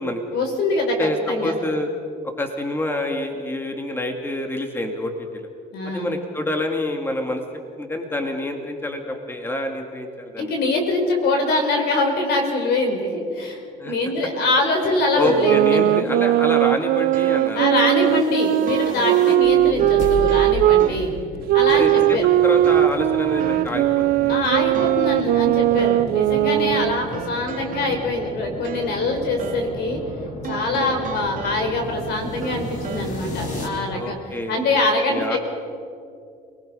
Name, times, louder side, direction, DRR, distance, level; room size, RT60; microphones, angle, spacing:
voice 1, 0.3-1.6 5.7-6.1 10.4-16.0 17.5-21.1 21.5-22.3 24.3-30.0 30.5-34.2 34.5-35.4, left 2 dB, 75° left, 4 dB, 4.6 m, -23 dB
voice 2, 1.0-1.9 2.2-5.5 5.8-7.4 7.8-10.5 13.8-13.9 15.2-18.4 19.2-19.3 20.6-21.1 21.7-22.2 22.4-24.4 26.5-26.9 30.8-30.9 33.9-34.7 35.1-35.4, left 1 dB, 15° left, 4 dB, 2.2 m, -27 dB
sound 1, 13.9-15.9 16.4-16.5 17.1-17.7 18.7-19.4 19.8-21.3 21.7-22.2 22.6-23.9 24.4-25.2 25.8-26.2 27.1-29.1 29.4-29.8 30.4-32.0 32.4-33.1, right 7 dB, 50° right, 2.4 m, -36 dB
sound 2, 15.3-20.9 21.5-27.1, right 15 dB, 65° right, 0.4 m, -19 dB
sound 3, 17.9-33.7, left 2 dB, 50° left, 4.5 m, -34 dB
28.5 x 19.0 x 5.6 m, 2.5 s
cardioid pair, 110°, 17 cm